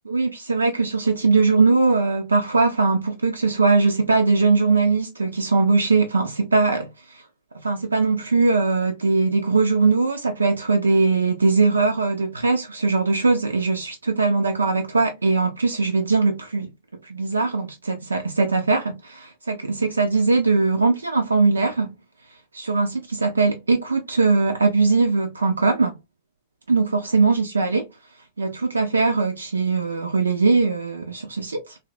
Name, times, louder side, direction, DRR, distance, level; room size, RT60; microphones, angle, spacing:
voice 1, 0.1-7.2 7.6-16.7 17.0-21.9 22.5-26.0 26.7-27.9 28.4-31.8, right 3 dB, 75° right, 0.3 m, -20 dB
3.0 x 2.2 x 2.4 m
figure-of-eight pair, 90°, 0 cm